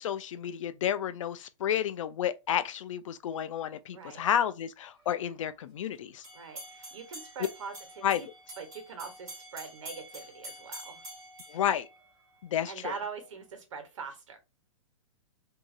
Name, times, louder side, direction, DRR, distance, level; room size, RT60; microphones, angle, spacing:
voice 1, 0.0-6.3 8.0-8.3 11.5-11.9 12.4-12.9, left 10 dB, 70° left, 0.4 m, -31 dB
voice 2, 3.9-4.2 6.3-8.3 8.6-11.1 12.7-14.4, right 5 dB, 70° right, 1.1 m, -42 dB
sound 1, 6.2-12.5, right 1 dB, 15° right, 1.6 m, -47 dB
2.8 x 2.7 x 2.6 m
hypercardioid pair, 170°, 17 cm